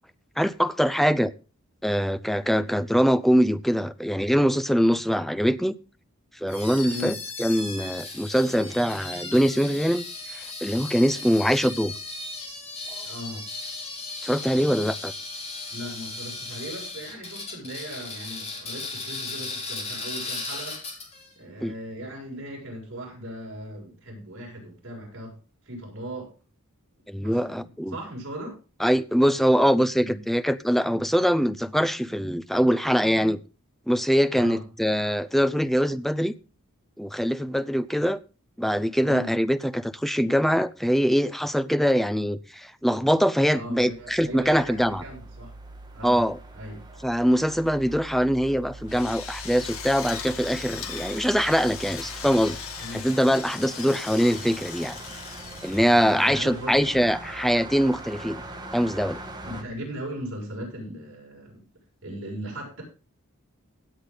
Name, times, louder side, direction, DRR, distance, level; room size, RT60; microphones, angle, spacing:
voice 1, 0.4-1.3 1.8-5.8 6.4-10.0 10.3-11.9 14.2-15.1 21.6-21.7 27.1-27.9 28.8-33.4 33.9-36.3 37.0-38.2 38.6-45.0 46.0-46.4 47.0-52.6 52.9-55.0 55.6-58.4 58.7-59.2, equal, ahead, 0.5 m, -23 dB
sound 1, 6.5-21.3, left 3 dB, 30° left, 3.4 m, -36 dB
voice 2, 6.8-7.1 13.0-13.4 15.7-20.8 21.4-25.4 25.6-26.3 27.2-28.6 30.0-30.2 34.3-34.6 39.0-39.3 43.5-45.5 45.9-46.2 46.5-46.8 52.8-53.0 53.7-53.9 55.7-57.1 59.5-61.6 62.0-62.8, equal, 60° right, 6.7 m, -38 dB
sound 2, 43.6-59.6, right 2 dB, 20° right, 1.7 m, -42 dB
Drill, 48.9-56.7, left 7 dB, 75° left, 2.1 m, -39 dB
16.5 x 8.3 x 4.0 m
head